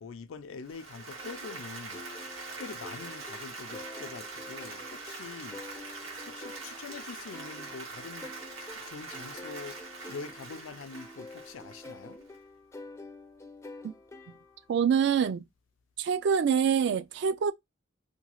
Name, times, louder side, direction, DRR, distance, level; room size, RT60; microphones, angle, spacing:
voice 1, 0.0-2.0 2.6-8.3 8.6-9.8 10.1-12.2, left 5 dB, 85° left, 0.4 m, -44 dB
Applause, 0.6-12.3, right 3 dB, 85° right, 1.4 m, -43 dB
sound 1, 1.2-14.8, left 2 dB, 15° left, 0.4 m, -48 dB
voice 2, 14.7-15.4 16.0-17.5, right 7 dB, 60° right, 0.3 m, -25 dB
2.9 x 2.3 x 2.9 m
head